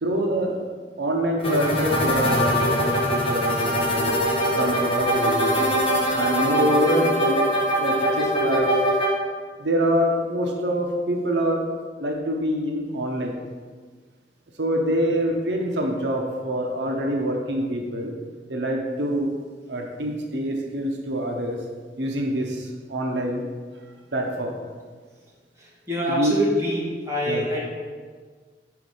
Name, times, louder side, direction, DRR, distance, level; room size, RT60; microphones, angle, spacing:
voice 1, 0.0-0.7 1.0-4.1 4.5-5.6 6.1-8.8 9.6-11.6 12.0-13.3 14.6-18.1 18.5-19.3 19.7-21.6 22.0-23.4 24.1-24.6 26.1-26.4 27.3-27.5, equal, 80° right, 1 dB, 0.8 m, -25 dB
sound 1, 1.4-9.1, equal, 30° left, 1.2 m, -22 dB
voice 2, 25.9-27.7, equal, 15° right, -5 dB, 1.4 m, -25 dB
5.1 x 4.7 x 5.4 m, 1.5 s
head